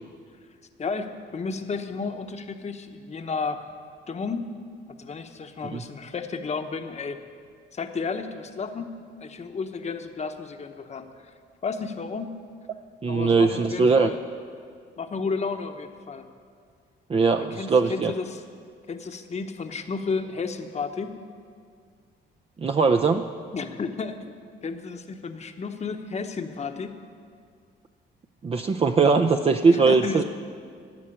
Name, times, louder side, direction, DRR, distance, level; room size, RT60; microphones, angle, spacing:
voice 1, 0.8-3.7 4.1-4.5 5.0-7.2 7.7-8.9 9.2-11.1 11.6-12.3 13.1-14.2 15.0-16.3 17.3-18.4 18.9-21.2 23.5-24.4 24.6-27.0 29.7-30.2, left 4 dB, 35° left, 6 dB, 1.0 m, -32 dB
voice 2, 13.0-14.1 17.1-18.1 22.6-23.3 28.4-30.2, right 4 dB, 30° right, 4 dB, 0.5 m, -20 dB
13.0 x 7.8 x 9.9 m, 2.1 s
cardioid pair, 90°, 20 cm